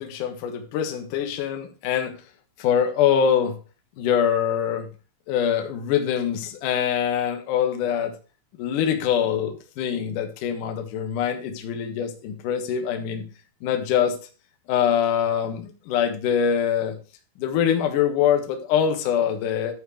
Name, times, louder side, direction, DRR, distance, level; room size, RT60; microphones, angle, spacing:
voice 1, 0.0-2.1 2.6-3.5 4.0-4.9 5.3-8.1 8.6-13.2 13.6-14.2 14.7-17.0 17.4-19.7, left 8 dB, 65° left, 5 dB, 2.2 m, -24 dB
11.5 x 4.5 x 6.4 m, 0.34 s
omnidirectional pair, 5.5 m